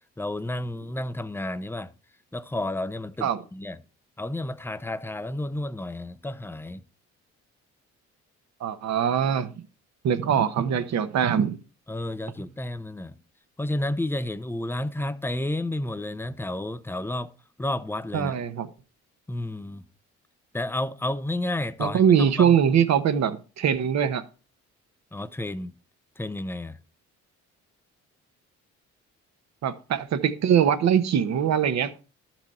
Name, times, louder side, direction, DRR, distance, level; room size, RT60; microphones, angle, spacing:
voice 1, 0.2-1.9 2.3-3.8 4.2-6.8 11.9-13.1 13.6-17.3 17.6-18.3 19.3-19.8 20.5-22.0 22.4-22.6 25.1-25.7 26.2-26.8, left 1 dB, 5° left, 0.7 m, -31 dB
voice 2, 8.6-9.5 10.0-11.6 18.1-18.7 21.8-24.2 29.6-31.9, right 8 dB, 60° right, 1.1 m, -22 dB
12.0 x 6.0 x 4.3 m
cardioid pair, 90°, 30 cm